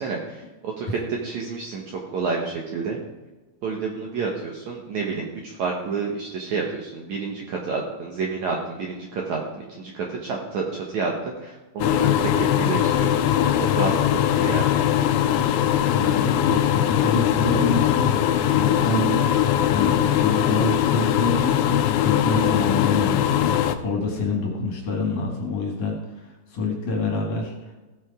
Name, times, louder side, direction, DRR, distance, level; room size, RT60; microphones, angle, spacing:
voice 1, 0.0-3.0 3.6-14.7, right 4 dB, 65° right, 0 dB, 1.9 m, -29 dB
sound 1, 11.8-23.8, left 11 dB, 90° left, 2.7 m, -21 dB
voice 2, 15.4-18.2 18.5-19.1 19.7-27.7, left 3 dB, 55° left, 0 dB, 2.9 m, -27 dB
16.5 x 6.5 x 4.8 m, 1.2 s
omnidirectional pair, 4.6 m